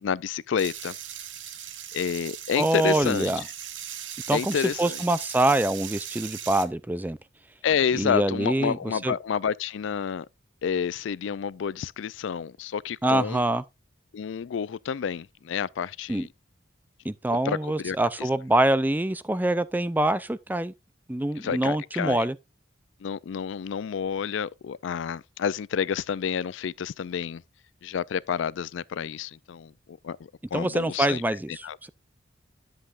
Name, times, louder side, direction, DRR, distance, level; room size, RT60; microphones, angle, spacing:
voice 1, 0.0-0.9 1.9-3.3 4.3-5.0 7.6-10.3 10.6-13.4 14.1-16.3 17.4-18.3 21.4-22.3 23.0-27.4 27.8-30.2 30.5-31.2 31.6-31.8, left 7 dB, 75° left, 0.4 m, -29 dB
sound 1, 0.6-6.7, right 10 dB, 75° right, 1.0 m, -38 dB
voice 2, 2.6-3.4 4.3-7.2 7.9-9.1 13.0-13.6 16.1-16.3 17.0-20.7 21.1-22.4 30.5-31.7, right 1 dB, 10° right, 0.4 m, -25 dB
10.5 x 7.5 x 2.5 m
head